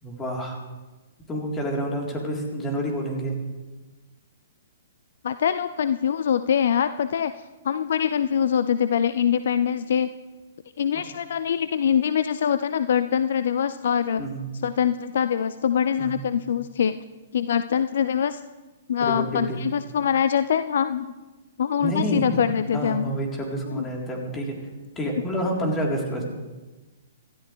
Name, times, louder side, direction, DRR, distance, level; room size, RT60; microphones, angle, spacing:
voice 1, 0.0-0.6 1.3-3.3 10.9-11.0 14.2-14.4 16.0-16.3 19.0-19.6 21.8-22.2 22.7-24.6 25.0-26.2, right 1 dB, 15° left, -1 dB, 3.8 m, -28 dB
voice 2, 5.2-7.3 7.6-10.1 10.8-14.2 14.6-17.0 17.3-18.4 18.9-21.1 21.6-23.1 23.7-23.8, left 8 dB, 55° left, 13 dB, 0.5 m, -23 dB
27.0 x 13.0 x 3.4 m, 1.2 s
figure-of-eight pair, 115°, 0 cm